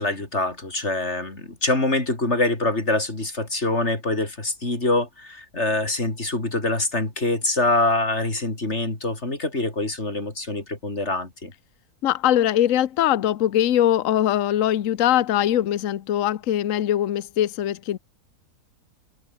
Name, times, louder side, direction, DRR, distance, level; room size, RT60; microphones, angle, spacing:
voice 1, 0.0-11.5, left 2 dB, 45° left, 4.8 m, -25 dB
voice 2, 12.0-18.0, left 11 dB, 60° left, 1.2 m, -21 dB
open air
omnidirectional pair, 1.6 m